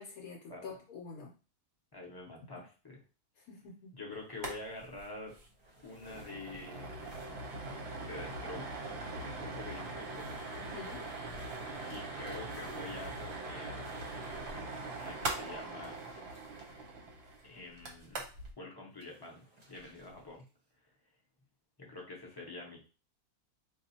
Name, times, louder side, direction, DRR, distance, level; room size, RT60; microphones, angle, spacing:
voice 1, 0.0-1.3 3.4-4.0 10.6-11.0, left 5 dB, 75° left, -1 dB, 1.1 m, -47 dB
voice 2, 1.9-3.0 3.9-5.3 5.8-7.0 8.0-10.4 11.9-13.9 14.9-16.0 17.4-18.2 18.6-20.4 21.8-22.9, left 2 dB, 20° left, -2 dB, 0.6 m, -46 dB
sound 1, 4.3-4.6 4.8-4.9 5.3-5.5 5.8-18.5, right 2 dB, 55° right, 0.9 m, -41 dB
sound 2, 4.5-8.4 8.9-9.3 9.6-16.8 18.9-20.6, equal, 25° right, 0.6 m, -59 dB
4.0 x 2.4 x 2.7 m, 0.33 s
omnidirectional pair, 1.6 m